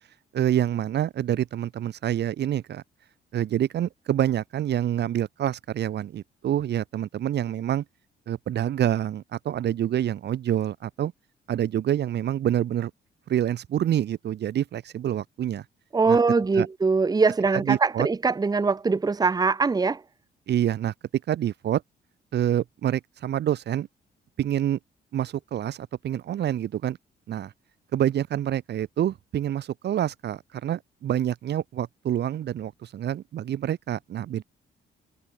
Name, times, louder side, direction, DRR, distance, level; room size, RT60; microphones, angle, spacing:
voice 1, 0.3-2.8 3.3-7.8 8.3-11.1 11.5-12.9 13.3-15.6 16.1-16.2 16.6-16.7 17.6-18.1 20.5-20.9 21.3-21.8 22.3-23.9 24.4-24.8 25.1-27.0 27.3-27.5 27.9-34.4, right 11 dB, 65° right, 1.0 m, -27 dB
voice 2, 15.9-20.0, right 4 dB, 20° right, 0.8 m, -22 dB
cardioid pair, 80°, 19 cm